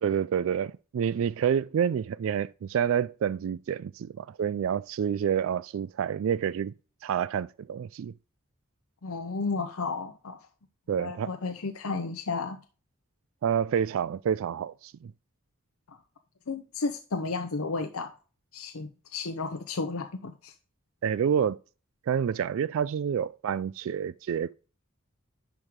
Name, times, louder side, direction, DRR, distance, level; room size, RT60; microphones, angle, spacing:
voice 1, 0.0-6.7 7.0-8.1 10.9-11.3 13.4-15.1 21.0-21.6 22.1-24.5, right 8 dB, 70° right, 0.3 m, -28 dB
voice 2, 9.0-10.5 11.0-12.6 15.9-16.0 16.5-18.1 18.5-20.5, left 4 dB, 90° left, 0.8 m, -33 dB
10.5 x 4.9 x 3.6 m
head